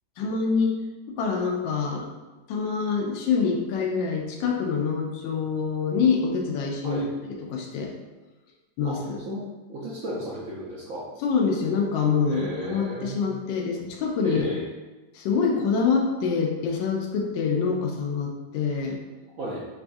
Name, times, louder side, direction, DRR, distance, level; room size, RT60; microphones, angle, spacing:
voice 1, 0.2-0.8 1.2-2.1 2.5-7.9 8.8-9.2 11.2-14.4 15.1-19.0, left 5 dB, 85° left, 1 dB, 1.3 m, -25 dB
voice 2, 9.7-11.1 12.2-13.3 14.2-14.7 19.4-19.6, equal, 70° right, -6 dB, 0.8 m, -33 dB
4.9 x 2.3 x 2.5 m, 1.2 s
omnidirectional pair, 2.0 m